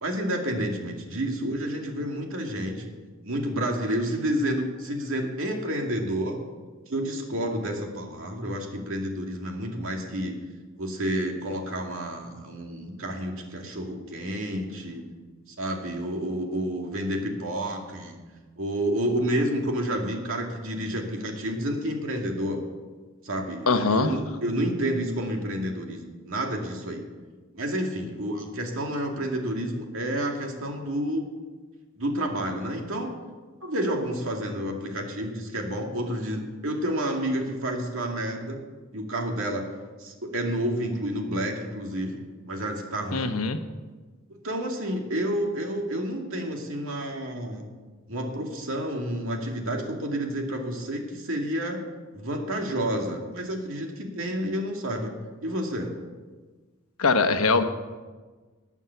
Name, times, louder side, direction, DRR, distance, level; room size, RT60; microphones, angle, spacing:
voice 1, 0.0-2.9 3.2-6.4 6.9-10.4 10.8-15.1 15.6-18.2 18.6-22.6 23.2-27.0 27.5-31.2 32.0-33.1 33.6-38.6 38.9-39.7 40.0-42.2 42.5-43.4 44.4-47.7 48.1-51.8 52.1-55.1 55.4-55.9, right 1 dB, 70° right, 2 dB, 2.4 m, -30 dB
voice 2, 23.7-24.2 43.1-43.6 57.0-57.6, left 4 dB, 90° left, 7 dB, 1.1 m, -22 dB
19.0 x 7.4 x 7.1 m, 1.4 s
head